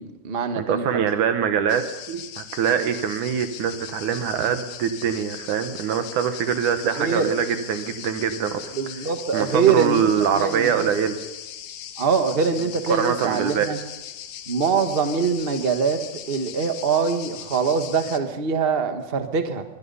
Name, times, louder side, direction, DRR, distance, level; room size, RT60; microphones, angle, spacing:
voice 1, 0.0-1.1 7.0-7.3 8.7-10.9 12.0-13.8 14.5-16.0 16.3-19.6, right 5 dB, 40° right, 7 dB, 0.8 m, -23 dB
voice 2, 0.6-8.7 9.3-11.2 12.9-13.7, right 8 dB, 70° right, 9 dB, 2.6 m, -24 dB
sound 1, 1.7-18.2, left 10 dB, 80° left, 2.8 m, -39 dB
23.0 x 22.0 x 5.6 m, 1.1 s
omnidirectional pair, 3.8 m